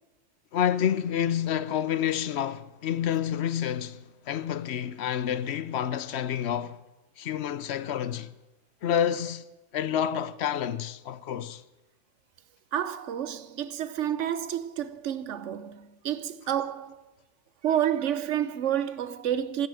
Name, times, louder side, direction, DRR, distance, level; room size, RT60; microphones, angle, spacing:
voice 1, 0.5-6.8 7.2-8.3 8.8-9.4 9.7-11.6, left 9 dB, 65° left, 0.9 m, -29 dB
voice 2, 12.7-17.0 17.6-19.7, right 10 dB, 90° right, 1.1 m, -29 dB
12.5 x 10.5 x 8.9 m
omnidirectional pair, 1.2 m